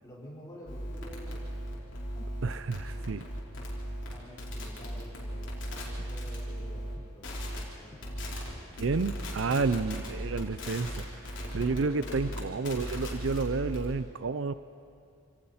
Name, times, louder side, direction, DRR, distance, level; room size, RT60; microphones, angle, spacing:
voice 1, 0.0-1.4 3.0-3.1 3.6-8.8 9.4-9.9 11.4-12.6, equal, 15° left, -6 dB, 4.7 m, -50 dB
sound 1, 0.7-6.9 7.2-7.6 8.0-8.5 8.8-13.9, equal, 55° left, 4.1 m, -37 dB
voice 2, 2.4-3.2 8.8-11.1 11.5-14.5, right 4 dB, 60° right, 13 dB, 0.5 m, -30 dB
sound 2, 5.9-11.6, equal, 30° left, 1.9 m, -54 dB
27.0 x 18.0 x 5.7 m, 2.3 s
head